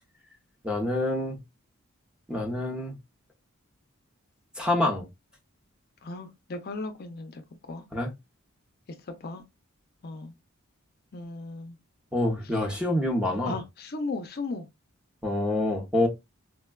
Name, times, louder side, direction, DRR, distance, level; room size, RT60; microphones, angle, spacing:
voice 1, 0.6-1.4 2.3-2.9 4.6-5.1 7.9-8.1 12.1-13.6 15.2-16.1, left 1 dB, 5° right, 0.7 m, -26 dB
voice 2, 6.0-7.8 9.1-9.4 10.0-10.3 11.1-11.8 12.5-12.6 13.2-14.7, left 3 dB, 45° left, 0.5 m, -36 dB
4.3 x 2.2 x 2.2 m
head